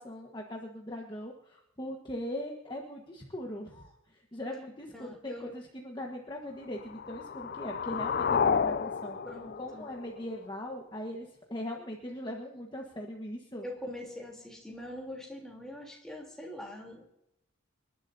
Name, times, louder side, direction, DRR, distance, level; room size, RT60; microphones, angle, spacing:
voice 1, 0.0-9.2 9.6-13.7, left 1 dB, 25° left, 0 dB, 1.4 m, -40 dB
voice 2, 4.9-5.5 9.2-9.8 13.6-17.0, left 1 dB, 5° left, -2 dB, 3.4 m, -43 dB
sound 1, 6.7-10.7, left 6 dB, 50° left, 0.4 m, -31 dB
27.5 x 11.5 x 2.8 m, 0.83 s
head